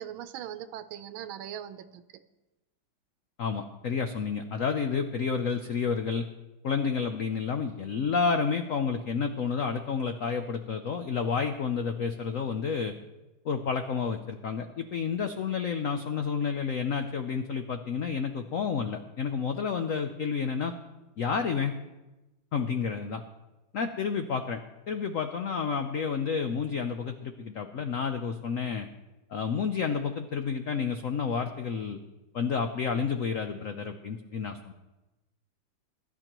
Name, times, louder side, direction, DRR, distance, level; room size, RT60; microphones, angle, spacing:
voice 1, 0.0-2.2, right 10 dB, 75° right, 12 dB, 1.5 m, -40 dB
voice 2, 3.4-6.3 6.6-13.0 13.4-20.7 21.2-21.7 22.5-23.2 23.7-28.9 29.3-32.0 32.3-34.7, left 6 dB, 85° left, 7 dB, 0.7 m, -30 dB
22.5 x 11.5 x 3.0 m, 1.1 s
omnidirectional pair, 2.3 m